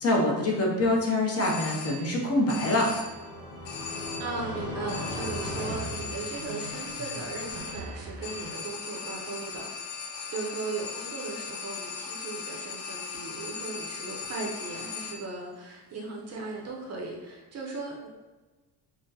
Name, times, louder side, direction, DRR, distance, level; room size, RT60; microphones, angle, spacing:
voice 1, 0.0-2.9, left 1 dB, 35° left, -2 dB, 0.5 m, -25 dB
sound 1, 1.4-2.2 2.5-3.3 3.6-4.5 4.9-15.4, left 5 dB, 80° left, 0.6 m, -38 dB
sound 2, 2.3-6.9, left 1 dB, 55° left, 1.0 m, -38 dB
voice 2, 4.2-9.7 10.3-18.1, right 3 dB, 35° right, -1 dB, 0.5 m, -37 dB
sound 3, 4.4-8.5, right 2 dB, 85° right, 0.8 m, -42 dB
5.5 x 2.0 x 2.7 m, 1.2 s
cardioid pair, 180°, 42 cm